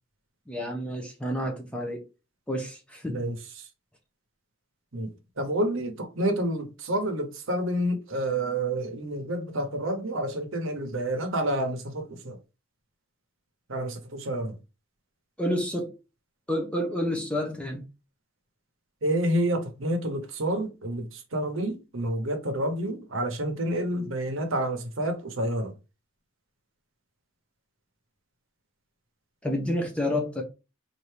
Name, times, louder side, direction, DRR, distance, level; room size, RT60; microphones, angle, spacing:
voice 1, 0.5-2.0 2.5-3.3 15.4-15.9 16.5-17.8 29.4-30.4, left 1 dB, 5° left, 0.6 m, -29 dB
voice 2, 3.1-3.7 4.9-5.1 5.4-12.4 13.7-14.6 19.0-25.7, right 1 dB, 70° right, 0.9 m, -29 dB
4.4 x 2.6 x 3.3 m
head